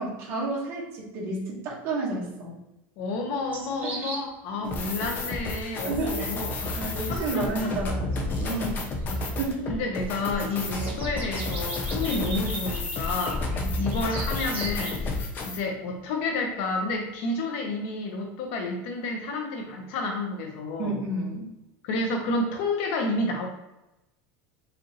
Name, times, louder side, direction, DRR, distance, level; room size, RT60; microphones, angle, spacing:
voice 1, 0.0-2.6 3.8-4.1 5.8-6.3 6.8-8.8 9.4-9.7 10.8-10.9 13.6-13.7 20.8-21.5, right 2 dB, 40° right, -3 dB, 1.4 m, -31 dB
voice 2, 3.0-6.8 7.1-7.7 9.2-9.4 9.7-13.4 13.8-21.0 21.8-23.5, left 2 dB, 60° left, 3 dB, 1.0 m, -30 dB
sound 1, 3.5-4.2 9.0-9.1 9.9-15.0, right 4 dB, 25° right, 1.0 m, -39 dB
sound 2, 4.6-15.6, left 2 dB, 30° left, 0.7 m, -31 dB
5.0 x 2.6 x 3.0 m, 0.94 s
supercardioid pair, 160°, 6 cm